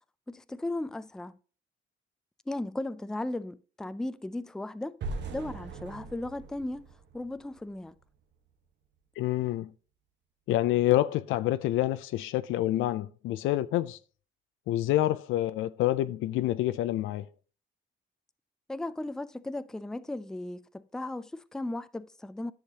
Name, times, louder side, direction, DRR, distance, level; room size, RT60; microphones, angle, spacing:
voice 1, 0.3-1.4 2.5-5.0 5.3-6.9 7.1-8.0 18.7-22.5, left 2 dB, 5° left, 0.4 m, -36 dB
sound 1, 5.0-8.0, right 3 dB, 65° right, 1.1 m, -40 dB
voice 2, 9.2-9.7 10.5-14.0 14.7-17.3, left 14 dB, 85° left, 0.4 m, -27 dB
10.5 x 6.4 x 2.8 m
cardioid pair, 90°, 20 cm